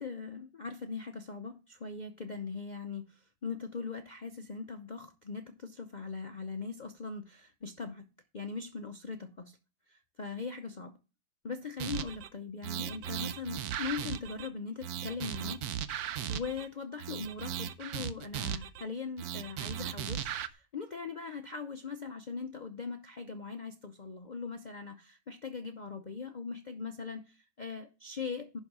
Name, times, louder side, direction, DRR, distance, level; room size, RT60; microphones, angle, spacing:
voice 1, 0.0-8.0 8.3-9.6 9.9-11.0 11.4-15.6 16.3-28.6, left 5 dB, 50° left, 0.5 m, -40 dB
sound 1, 11.8-12.3 12.6-14.5 14.8-16.7 17.0-18.8 19.2-20.5, right 10 dB, 75° right, 1.2 m, -37 dB
11.0 x 3.8 x 5.9 m
omnidirectional pair, 1.7 m